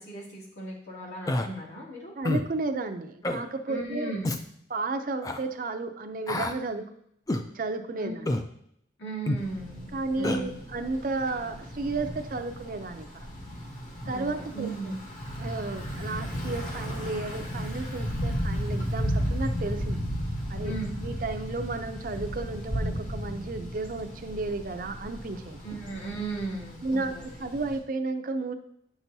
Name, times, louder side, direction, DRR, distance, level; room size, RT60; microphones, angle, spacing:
voice 1, 0.0-2.1 3.7-4.4 8.0-8.2 9.0-10.6 14.1-15.0 20.6-20.9 25.6-27.3, right 2 dB, 65° left, -5 dB, 2.5 m, -36 dB
Human voice, 1.3-1.5 2.2-2.5 3.2-3.4 4.2-4.4 5.2-5.4 6.3-6.6 7.3-7.5 8.3-8.5 9.3-9.4 10.2-10.4, left 1 dB, 20° left, 0.4 m, -28 dB
voice 2, 2.2-4.1 4.7-6.8 7.5-8.4 9.9-13.3 14.1-14.9 15.4-20.1 20.5-20.7 21.0-25.6 26.8-28.5, right 3 dB, 45° right, 7 dB, 0.5 m, -33 dB
Thunder / Bicycle, 9.4-27.8, equal, 40° left, 1.5 m, -34 dB
9.5 x 6.0 x 2.7 m, 0.71 s
head